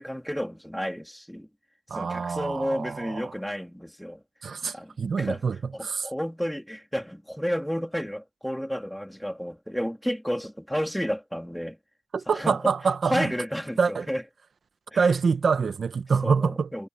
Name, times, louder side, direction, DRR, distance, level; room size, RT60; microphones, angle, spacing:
voice 1, 0.0-1.5 1.9-4.2 4.6-5.4 5.7-11.8 12.3-12.7 13.0-14.2 14.9-15.1 16.2-16.9, equal, ahead, 2.9 m, -31 dB
voice 2, 1.9-3.3 4.4-6.1 12.1-13.3 13.8-14.1 15.0-16.7, right 5 dB, 80° right, 0.9 m, -26 dB
wide cardioid pair, 75°, 0 cm